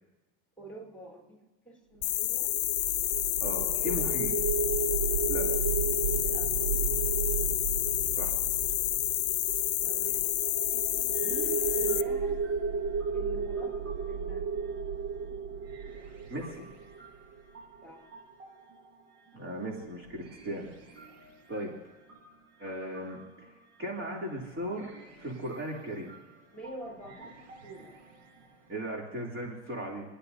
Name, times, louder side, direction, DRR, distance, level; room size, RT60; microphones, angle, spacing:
voice 1, 0.6-2.5 3.6-4.1 6.2-6.9 9.8-10.4 11.2-12.4 13.1-14.6 17.8-18.0 26.5-27.9, right 1 dB, 5° left, -1 dB, 3.9 m, -47 dB
sound 1, 2.0-12.0, left 20 dB, 70° left, 0.6 m, -29 dB
sound 2, 2.0-17.1, right 5 dB, 75° right, 1.4 m, -33 dB
voice 2, 3.4-4.3 5.3-5.5 8.2-8.3 16.3-16.7 19.3-20.7 21.5-21.7 22.6-23.5 23.8-26.1 28.7-30.0, equal, 35° right, -2 dB, 3.2 m, -37 dB
sound 3, 10.7-28.9, right 3 dB, 90° right, 5.3 m, -54 dB
29.5 x 10.0 x 2.8 m, 1.2 s
hypercardioid pair, 85°, 35 cm